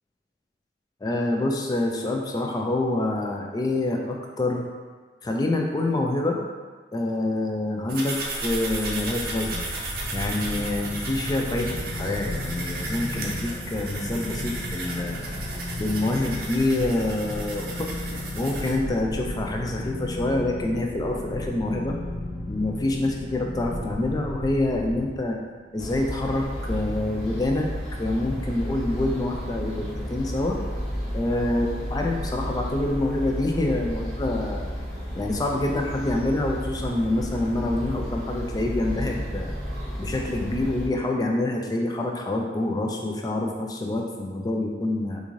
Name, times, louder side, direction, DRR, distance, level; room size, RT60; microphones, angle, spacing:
voice 1, 1.0-4.6 5.2-6.4 6.9-9.6 10.1-15.2 15.8-17.9 18.4-22.0 22.5-25.4 25.7-27.7 28.0-30.6 31.1-34.7 35.2-39.5 40.0-45.2, left 2 dB, 20° left, 1 dB, 0.3 m, -26 dB
sound 1, 7.9-18.7, right 2 dB, 55° right, 0.6 m, -35 dB
sound 2, 8.3-25.5, left 1 dB, 80° left, 0.6 m, -34 dB
sound 3, 25.8-40.9, equal, ahead, 0.8 m, -32 dB
3.7 x 2.5 x 3.0 m, 1.5 s
head